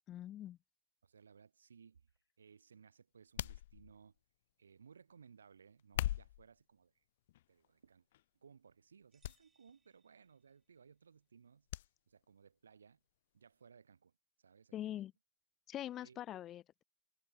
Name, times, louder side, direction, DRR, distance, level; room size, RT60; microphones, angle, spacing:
voice 1, 0.1-0.6 14.7-15.1 15.7-16.8, left 12 dB, 25° left, 1.5 m, -44 dB
voice 2, 1.0-2.0 2.4-4.2 4.6-7.0 7.5-8.1 8.3-11.7 12.1-13.0 13.3-14.1 14.4-15.0 16.0-16.2, right 6 dB, 65° right, 3.2 m, -62 dB
sound 1, 3.4-4.2 5.8-6.5 7.3-7.7 8.1-8.2 9.2-9.4 9.7-9.8 11.7-11.9 12.2-12.3, left 14 dB, 50° left, 0.3 m, -40 dB
sound 2, 9.1-10.9, right 5 dB, 10° right, 5.6 m, -78 dB
figure-of-eight pair, 105°, 0 cm